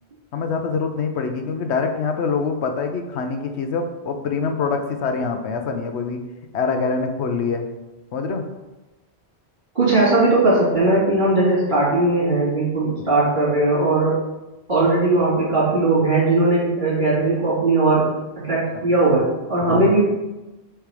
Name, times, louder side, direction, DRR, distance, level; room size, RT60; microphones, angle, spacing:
voice 1, 0.3-6.2 6.5-7.6 8.1-8.4 19.7-20.0, left 5 dB, 80° left, 5 dB, 1.0 m, -25 dB
voice 2, 9.7-14.2 14.7-18.1 18.4-20.0, right 2 dB, 45° right, -6 dB, 2.5 m, -18 dB
6.7 x 3.5 x 4.8 m, 1.1 s
omnidirectional pair, 1.1 m